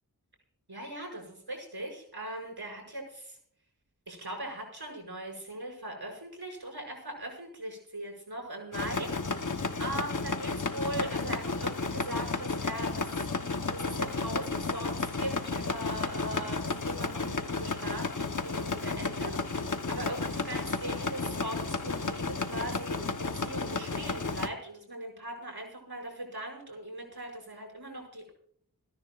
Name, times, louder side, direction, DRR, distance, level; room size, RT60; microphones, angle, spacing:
voice 1, 0.7-3.4 4.1-9.1 9.4-13.3 13.7-28.3, right 1 dB, 85° right, 1 dB, 6.4 m, -40 dB
sound 1, 8.7-24.5, left 3 dB, 55° left, 1.0 m, -33 dB
29.5 x 10.5 x 2.4 m, 0.65 s
wide cardioid pair, 45°, 37 cm